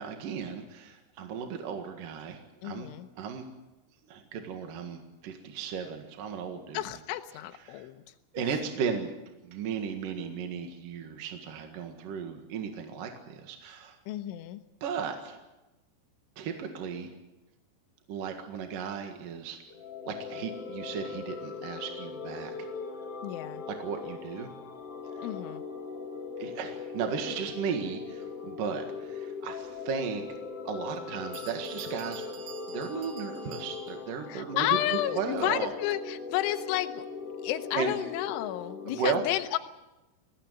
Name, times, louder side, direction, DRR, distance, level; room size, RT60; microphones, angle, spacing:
voice 1, 0.0-2.9 3.2-3.4 4.1-6.8 7.7-7.8 8.3-9.1 9.4-14.0 14.8-15.4 16.4-17.1 18.1-19.6 20.1-22.5 23.7-24.5 26.4-30.2 30.6-32.2 32.7-34.7 35.1-35.7 37.7-37.9 38.9-39.2, right 6 dB, 55° right, 5 dB, 2.8 m, -35 dB
voice 2, 2.6-3.1 6.7-8.0 8.4-8.6 14.1-14.6 23.2-23.6 25.2-25.6 34.3-37.1 37.4-39.6, left 14 dB, 85° left, 7 dB, 3.3 m, -31 dB
sound 1, 19.7-39.0, left 5 dB, 55° left, 1.7 m, -40 dB
Bell, 31.0-31.1 31.3-34.1, right 8 dB, 80° right, 1.0 m, -48 dB
21.5 x 16.5 x 9.1 m, 1.0 s
omnidirectional pair, 5.5 m